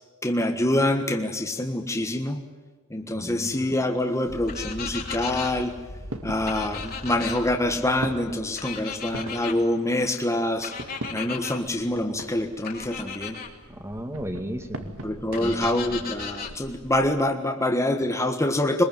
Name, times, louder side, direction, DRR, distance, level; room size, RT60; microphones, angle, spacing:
voice 1, 0.2-2.4 2.9-5.7 6.2-10.7 11.1-13.4 15.0-18.8, left 1 dB, 15° left, 4 dB, 1.5 m, -25 dB
voice 2, 3.2-3.6 13.7-14.9 15.3-15.7, equal, 10° right, 6 dB, 2.3 m, -34 dB
sound 1, 3.2-17.1, right 1 dB, 70° right, 2.3 m, -42 dB
sound 2, 4.2-9.3, equal, 70° left, 2.3 m, -42 dB
sound 3, 4.5-5.5 6.5-7.4 8.6-9.6 10.6-11.6 12.6-13.5 15.3-16.5, left 6 dB, 40° left, 3.1 m, -35 dB
23.0 x 21.5 x 9.2 m, 1.4 s
head